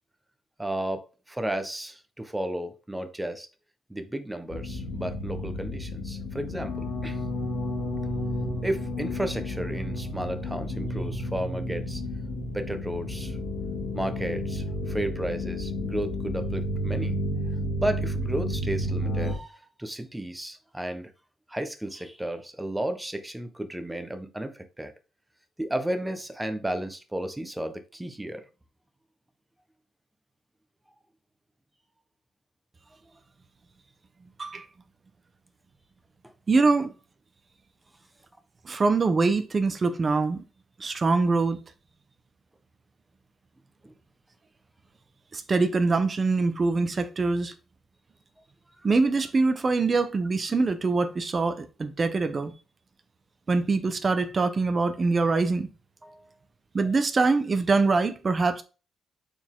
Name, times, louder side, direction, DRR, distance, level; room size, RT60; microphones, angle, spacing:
voice 1, 0.6-3.5 3.9-7.2 8.6-12.0 12.5-13.4 13.9-17.2 17.8-21.1 21.5-24.9 25.6-28.4 36.2-36.3 43.8-43.9 56.0-56.3, right 1 dB, 10° right, 1.3 m, -33 dB
sound 1, 4.5-19.3, left 1 dB, 90° left, 2.9 m, -31 dB
voice 2, 36.5-36.9 38.6-40.4 40.8-41.6 45.3-47.5 48.8-52.5 53.5-55.7 56.7-58.6, right 3 dB, 35° right, 1.1 m, -24 dB
6.9 x 4.5 x 3.8 m
cardioid pair, 90°, 0 cm